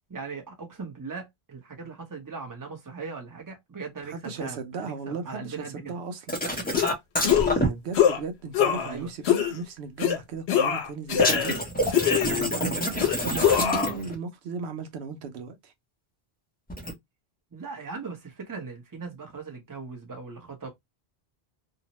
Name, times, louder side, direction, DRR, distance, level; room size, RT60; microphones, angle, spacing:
voice 1, 0.1-6.0 8.6-9.1 17.5-20.7, right 4 dB, 20° right, 0.7 m, -39 dB
voice 2, 4.0-6.3 7.6-15.7, right 4 dB, 85° right, 0.9 m, -36 dB
sound 1, 6.3-7.7 11.2-14.1 16.7-16.9, equal, 10° left, 0.5 m, -27 dB
sound 2, 6.7-6.9 7.2-7.6 7.9-8.2 8.5-8.9 9.3-9.5 10.0-10.2 10.5-11.6 11.9-12.6 13.0-13.9, left 9 dB, 85° left, 0.9 m, -23 dB
2.7 x 2.0 x 2.8 m
omnidirectional pair, 1.1 m